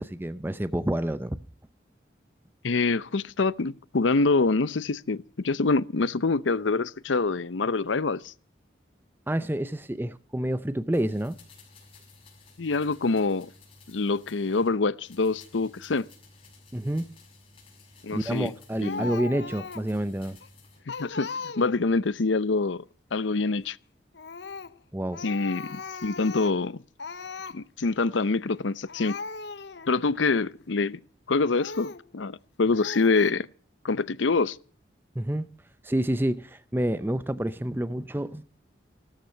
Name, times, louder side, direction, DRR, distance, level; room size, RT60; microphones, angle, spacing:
voice 1, 0.0-1.4 9.3-11.4 16.7-17.1 18.1-20.4 24.9-25.2 35.1-35.5 35.8-38.4, right 1 dB, 10° right, 0.6 m, -28 dB
voice 2, 2.6-8.3 12.6-13.5 13.9-16.1 18.0-18.5 18.8-19.1 21.0-22.8 23.1-23.8 25.2-26.8 27.5-29.2 29.9-31.0 31.3-33.5 33.8-34.6, left 3 dB, 90° left, 0.7 m, -25 dB
sound 1, 10.9-14.8 15.0-19.2 19.6-20.8 21.1-21.2, left 3 dB, 30° left, 6.4 m, -54 dB
Speech, 18.8-20.0 20.4-20.5 20.9-22.0 24.1-24.8 25.1-26.7 27.0-27.6 28.5-28.6 28.9-29.9 30.5-30.6 31.6-32.1 32.7-33.3, left 4 dB, 70° left, 0.9 m, -38 dB
16.5 x 13.5 x 5.7 m
head